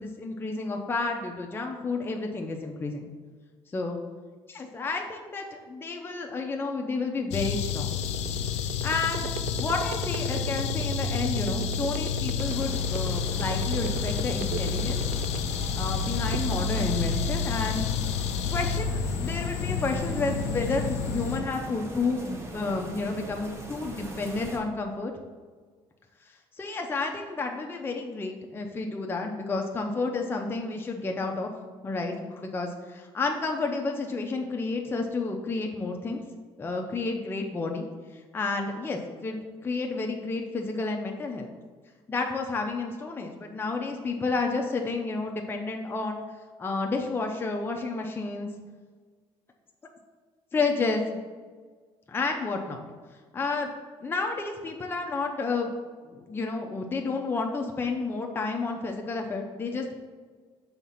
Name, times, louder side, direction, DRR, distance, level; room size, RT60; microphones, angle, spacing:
voice 1, 0.0-3.1 3.7-4.0 4.5-8.0 8.8-9.3 9.6-15.0 15.7-17.8 18.5-25.1 26.3-31.5 31.8-36.2 36.6-37.9 38.3-41.5 42.1-46.2 46.6-48.5 50.5-51.2 52.1-52.8 53.3-53.7 54.0-55.7 56.0-59.9, left 3 dB, 20° left, 2 dB, 0.6 m, -31 dB
sound 1, 7.3-21.4, left 6 dB, 80° left, 0.5 m, -29 dB
sound 2, 7.5-15.7 16.1-16.8, right 11 dB, 80° right, 0.4 m, -36 dB
sound 3, 12.4-24.6, right 1 dB, 25° right, 1.1 m, -41 dB
5.6 x 3.6 x 5.7 m, 1.5 s
cardioid pair, 110°, 11 cm